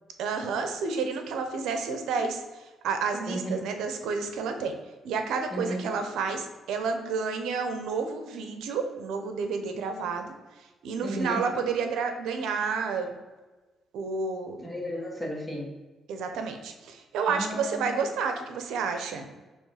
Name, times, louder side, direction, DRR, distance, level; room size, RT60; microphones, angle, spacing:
voice 1, 0.2-4.8 5.0-10.3 10.8-13.1 13.9-14.6 16.1-19.3, right 5 dB, 85° right, 6 dB, 0.7 m, -30 dB
voice 2, 3.3-3.7 5.5-5.9 11.0-11.5 14.6-15.7 17.3-18.0, equal, 5° left, -2 dB, 1.9 m, -34 dB
7.0 x 3.1 x 4.9 m, 1.2 s
cardioid pair, 90°, 0 cm